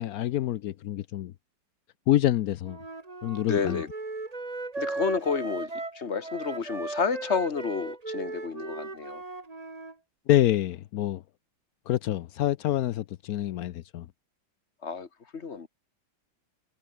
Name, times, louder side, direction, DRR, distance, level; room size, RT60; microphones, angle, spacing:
voice 1, 0.0-1.3 2.1-2.8 3.2-3.8 10.3-11.2 11.9-14.1, left 13 dB, 65° left, 0.9 m, -26 dB
Wind instrument woodwind instrument, 2.6-9.9, right 3 dB, 20° right, 1.8 m, -37 dB
voice 2, 3.4-3.9 4.8-9.2 14.8-15.7, left 5 dB, 35° left, 1.9 m, -30 dB
omnidirectional pair, 2.2 m